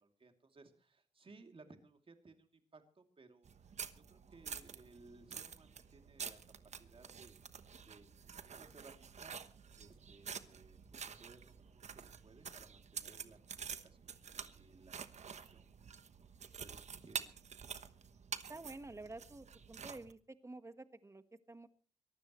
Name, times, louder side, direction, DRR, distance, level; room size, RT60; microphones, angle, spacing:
voice 1, 0.0-3.5 3.9-6.4 6.6-7.4 7.9-9.4 9.8-13.4 13.8-15.2 15.5-17.3, right 3 dB, 45° right, 5 dB, 2.9 m, -61 dB
sound 1, 3.4-20.1, right 6 dB, 65° right, 1.2 m, -49 dB
voice 2, 18.5-21.7, right 2 dB, 20° right, 11 dB, 1.4 m, -50 dB
23.0 x 15.0 x 3.2 m, 0.39 s
cardioid pair, 70°, 13 cm